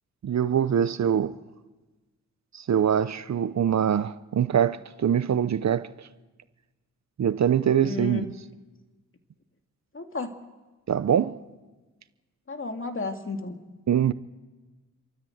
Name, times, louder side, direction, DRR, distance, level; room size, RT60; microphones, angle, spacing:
voice 1, 0.2-1.4 2.5-6.1 7.2-8.2 10.9-11.4 13.9-14.1, right 8 dB, 55° right, 0.7 m, -23 dB
voice 2, 7.8-8.3 9.9-10.3 12.5-13.6, left 3 dB, 40° left, 2.5 m, -33 dB
29.5 x 13.5 x 7.9 m
cardioid pair, 60°, 33 cm